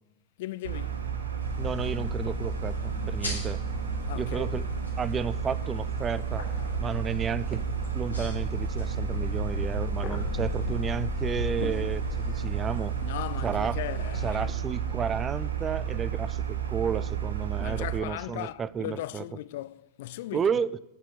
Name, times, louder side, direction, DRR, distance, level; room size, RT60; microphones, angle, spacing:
voice 1, 0.4-1.0 4.1-4.5 13.0-14.5 17.6-20.4, left 15 dB, 55° left, 0.4 m, -37 dB
sound 1, 0.6-18.0, right 9 dB, 70° right, 1.2 m, -32 dB
sound 2, 1.4-14.4, left 6 dB, 80° left, 3.4 m, -37 dB
voice 2, 1.6-3.6 4.2-4.7 5.0-6.5 6.8-7.7 7.9-13.0 13.4-13.8 14.2-19.2 20.3-20.8, right 6 dB, 20° right, 0.4 m, -32 dB
sound 3, 9.1-14.6, left 7 dB, 35° left, 1.6 m, -50 dB
9.9 x 6.7 x 7.2 m
figure-of-eight pair, 90°, 0 cm